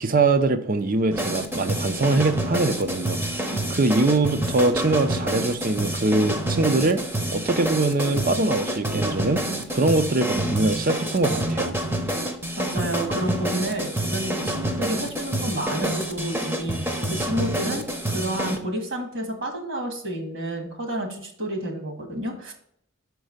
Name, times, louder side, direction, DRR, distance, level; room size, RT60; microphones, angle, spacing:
voice 1, 0.0-7.0 7.3-9.4 9.7-11.7, right 2 dB, 45° right, 10 dB, 0.6 m, -23 dB
sound 1, 1.1-18.6, right 1 dB, 10° right, 0.8 m, -27 dB
voice 2, 12.6-22.5, right 1 dB, 65° right, 3 dB, 1.8 m, -30 dB
6.5 x 4.6 x 6.5 m, 0.68 s
head